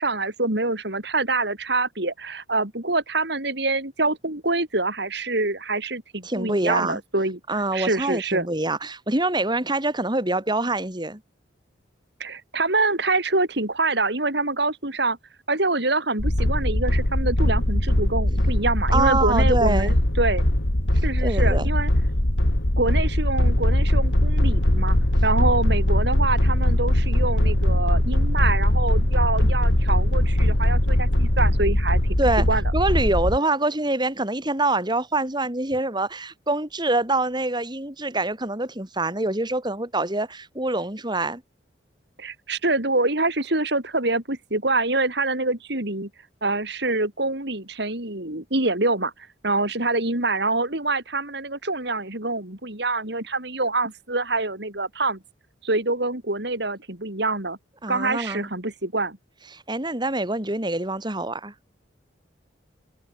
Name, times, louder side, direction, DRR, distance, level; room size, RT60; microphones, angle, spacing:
voice 1, 0.0-7.4 7.7-8.5 12.2-15.2 15.5-20.4 21.0-21.9 22.8-25.0 25.2-32.2 32.5-32.6 42.2-46.1 46.4-49.1 49.4-55.2 55.6-57.6 57.9-59.2, right 2 dB, 60° right, 4.3 m, -25 dB
voice 2, 6.2-7.0 7.5-11.2 18.9-19.9 21.2-21.7 32.2-32.5 32.7-41.4 57.8-58.5 59.5-61.5, right 2 dB, 25° right, 3.5 m, -25 dB
sound 1, 16.2-33.4, left 1 dB, 75° left, 2.9 m, -21 dB
head